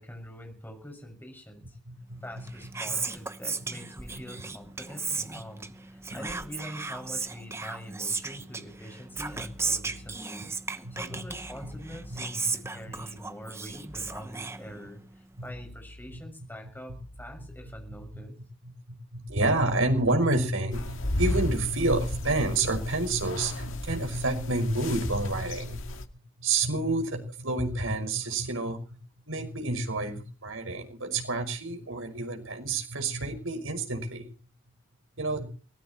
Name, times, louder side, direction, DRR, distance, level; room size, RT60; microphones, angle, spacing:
voice 1, 0.0-1.8 2.2-18.3, equal, 10° left, 4 dB, 6.5 m, -44 dB
voice 2, 1.9-2.4 10.8-11.2 11.6-11.7 12.1-12.2 15.4-15.5 18.1-18.2 18.9-26.0 26.4-29.0 29.3-34.3 35.2-35.5, right 2 dB, 75° right, 6 dB, 5.9 m, -29 dB
Whispering, 2.3-15.2, right 4 dB, 15° right, 1.0 m, -36 dB
sound 1, 9.1-10.2 11.3-12.2 13.9-14.2 15.5-16.2 16.9-18.2 19.3-20.2 21.9-22.2 23.5-24.2 24.9-25.3, equal, 45° left, 7.2 m, -48 dB
sound 2, 20.7-26.0, left 1 dB, 70° left, 2.0 m, -34 dB
23.0 x 19.0 x 3.1 m, 0.39 s
head